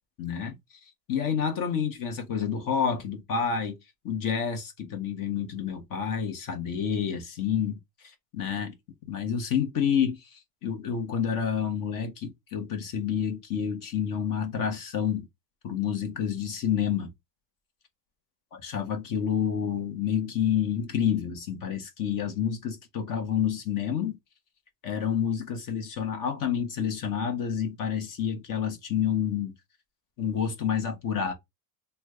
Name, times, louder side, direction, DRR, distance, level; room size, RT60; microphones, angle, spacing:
voice 1, 0.2-0.6 1.1-3.8 4.0-7.8 8.3-8.7 9.1-10.3 10.6-15.3 15.6-17.1 18.6-24.2 24.8-29.5 30.2-31.3, left 7 dB, 45° left, 1.0 m, -29 dB
3.4 x 2.2 x 3.2 m
supercardioid pair, 125°, 44 cm